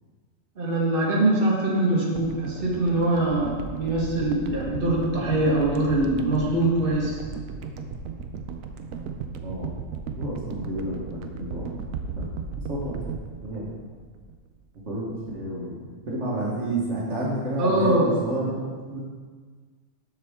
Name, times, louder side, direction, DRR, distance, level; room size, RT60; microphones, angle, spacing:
voice 1, 0.6-7.2 17.6-18.1, right 1 dB, 45° right, -4 dB, 1.4 m, -23 dB
sound 1, 2.2-14.5 14.8-14.9, right 5 dB, 85° right, 1.0 m, -36 dB
voice 2, 9.4-9.7 10.2-11.8 12.1-12.2 12.7-13.0 13.4-13.7 14.9-15.0 15.3-15.8 16.1-19.0, right 1 dB, 60° right, -5 dB, 1.5 m, -30 dB
7.4 x 6.1 x 3.4 m, 1.5 s
omnidirectional pair, 1.4 m